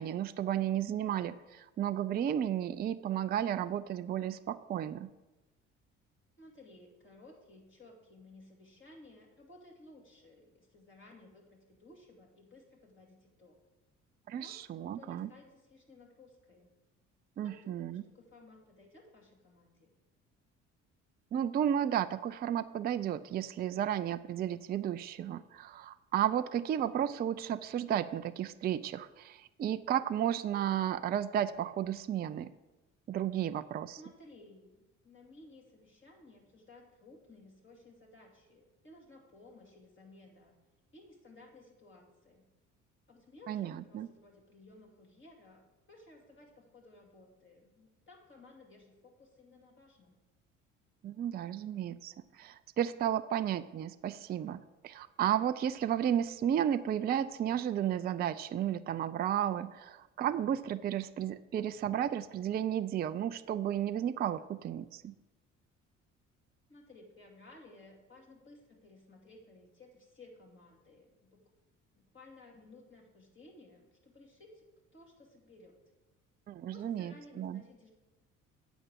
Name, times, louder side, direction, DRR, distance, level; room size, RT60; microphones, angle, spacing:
voice 1, 0.0-5.1 14.3-15.3 17.4-18.0 21.3-32.5 33.1-34.0 43.5-44.1 51.0-65.2 76.5-77.6, right 10 dB, 25° right, 11 dB, 0.4 m, -33 dB
voice 2, 6.4-13.6 14.4-16.7 17.4-19.9 34.0-40.6 40.9-42.4 43.1-50.2 66.7-71.5 72.0-74.7 74.9-75.8 76.7-77.9, left 2 dB, 30° left, -1 dB, 2.7 m, -57 dB
8.0 x 5.1 x 7.4 m, 1.1 s
hypercardioid pair, 55°, 37 cm